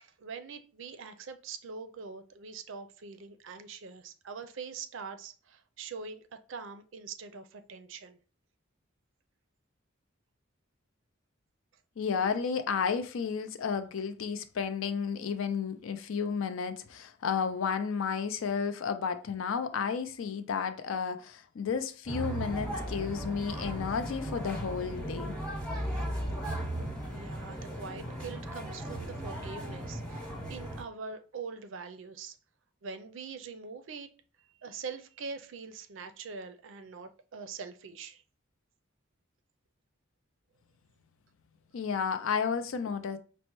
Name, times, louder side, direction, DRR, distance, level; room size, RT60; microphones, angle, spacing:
voice 1, 0.0-8.2 25.9-26.1 27.1-32.4 32.8-34.1 34.6-38.2, right 5 dB, 70° right, 0.4 m, -43 dB
voice 2, 12.0-25.3 41.7-43.2, left 6 dB, 75° left, 0.4 m, -32 dB
sound 1, 22.1-30.8, right 1 dB, 5° left, 0.8 m, -36 dB
5.3 x 2.1 x 3.0 m
head